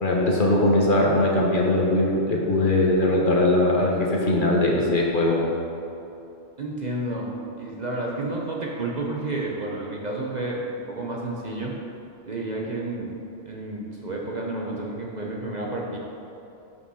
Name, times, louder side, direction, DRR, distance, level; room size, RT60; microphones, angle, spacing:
voice 1, 0.0-5.5, left 1 dB, 45° left, -2 dB, 1.1 m, -21 dB
voice 2, 6.6-7.3 7.6-11.7 12.2-13.1 13.4-16.0, right 2 dB, 40° right, -2 dB, 0.8 m, -30 dB
5.7 x 5.4 x 6.2 m, 2.8 s
omnidirectional pair, 1.2 m